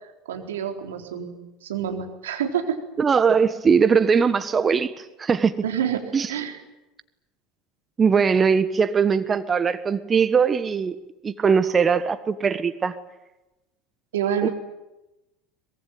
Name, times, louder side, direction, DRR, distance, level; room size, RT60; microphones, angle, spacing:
voice 1, 0.3-2.8 5.6-6.0 6.3-6.6 14.1-14.5, right 9 dB, 75° right, 3 dB, 4.0 m, -27 dB
voice 2, 3.0-4.9 5.2-5.5 6.1-6.3 8.0-11.0 11.2-12.9 14.4-14.5, right 6 dB, 25° right, 12 dB, 1.4 m, -20 dB
23.5 x 21.5 x 9.1 m, 1.0 s
hypercardioid pair, 75°, 0 cm